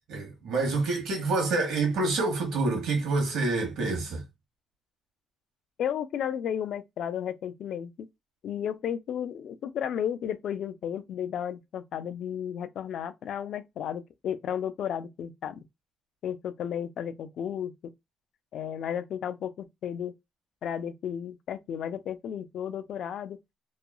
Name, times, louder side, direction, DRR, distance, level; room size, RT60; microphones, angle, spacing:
voice 1, 0.1-4.2, right 3 dB, 75° right, 1.1 m, -27 dB
voice 2, 5.8-7.9 8.4-15.6 16.2-17.7 18.5-20.1 20.6-23.4, left 9 dB, 55° left, 0.4 m, -33 dB
3.0 x 2.3 x 2.2 m
cardioid pair, 165°, 0 cm